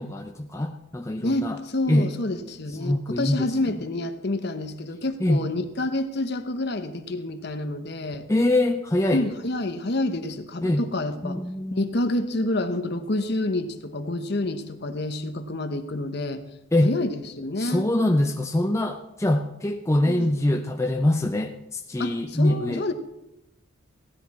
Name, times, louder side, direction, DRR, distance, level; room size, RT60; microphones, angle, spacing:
voice 1, 0.0-1.6 1.9-2.1 2.7-3.5 5.2-5.5 8.3-9.2 10.6-10.8 11.2-11.9 16.7-16.9 17.6-22.9, left 1 dB, 15° left, 4 dB, 0.5 m, -24 dB
voice 2, 1.2-8.3 9.1-11.4 11.7-16.4 16.8-17.9 20.0-20.3 22.0-22.9, left 2 dB, 50° left, 8 dB, 0.9 m, -28 dB
15.5 x 10.5 x 4.2 m, 0.89 s
head